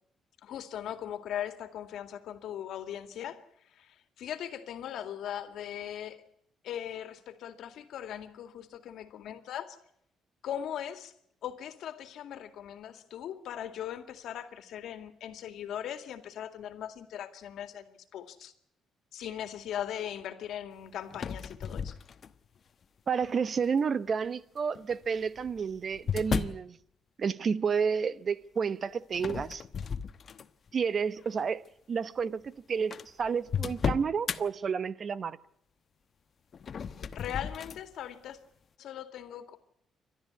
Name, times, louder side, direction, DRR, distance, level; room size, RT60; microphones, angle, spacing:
voice 1, 0.4-3.4 3.7-6.2 6.6-9.8 10.4-11.1 11.4-18.5 19.1-21.9 37.1-38.4 38.8-39.6, left 10 dB, 75° left, 2.2 m, -39 dB
sound 1, 21.1-22.6 23.2-23.7 24.8-26.7 29.1-30.7 31.2-31.4 32.2-32.3 32.5-32.6 32.9-34.4 36.5-37.8, left 6 dB, 50° left, 1.1 m, -35 dB
voice 2, 23.1-26.8 27.2-29.6 30.7-31.6 31.9-35.4, right 6 dB, 50° right, 0.9 m, -30 dB
29.5 x 12.5 x 9.6 m
cardioid pair, 90°, 0 cm